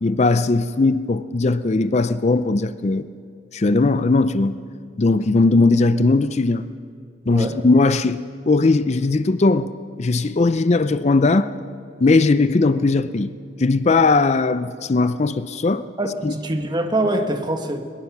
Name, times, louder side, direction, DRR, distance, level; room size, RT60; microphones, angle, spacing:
voice 1, 0.0-3.1 3.5-4.6 5.0-6.6 7.3-8.2 8.5-9.7 10.0-11.5 12.0-13.3 13.6-15.8 16.2-16.3, left 3 dB, 35° left, 0.5 m, -18 dB
voice 2, 7.3-7.7 16.0-17.9, right 1 dB, 25° right, 1.4 m, -24 dB
21.5 x 21.0 x 6.0 m
head